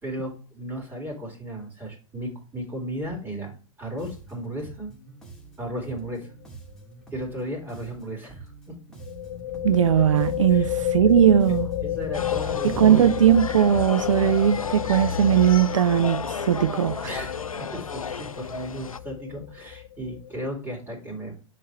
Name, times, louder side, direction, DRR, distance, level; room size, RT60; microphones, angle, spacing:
voice 1, 0.0-4.9 5.6-6.3 7.1-8.8 10.5-10.7 11.8-13.1 17.0-21.4, right 1 dB, 10° right, 3.9 m, -35 dB
Bass guitar, 4.0-13.9, right 4 dB, 5° left, 2.5 m, -47 dB
sound 1, 5.9-6.2 6.4-6.5 9.0-20.4, left 12 dB, 45° left, 1.0 m, -31 dB
voice 2, 9.6-11.7 12.6-17.1, right 10 dB, 65° right, 0.5 m, -19 dB
sound 2, 12.1-19.0, left 6 dB, 85° left, 0.4 m, -33 dB
9.9 x 4.2 x 3.2 m
figure-of-eight pair, 100°, 17 cm